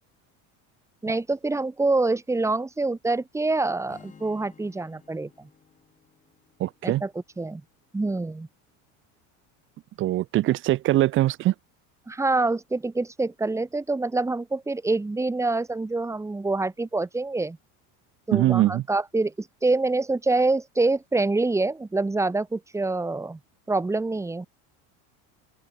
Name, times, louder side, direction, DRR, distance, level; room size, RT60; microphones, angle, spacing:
voice 1, 1.0-5.5 6.8-7.1 7.4-7.6 7.9-8.5 12.1-17.6 18.3-23.4 23.7-24.5, right 3 dB, 5° right, 1.7 m, -26 dB
Strum, 3.9-8.0, left 6 dB, 20° left, 7.4 m, -55 dB
voice 2, 6.6-7.0 10.0-11.5 18.3-18.8, right 15 dB, 30° right, 0.6 m, -22 dB
open air
cardioid pair, 150°, 39 cm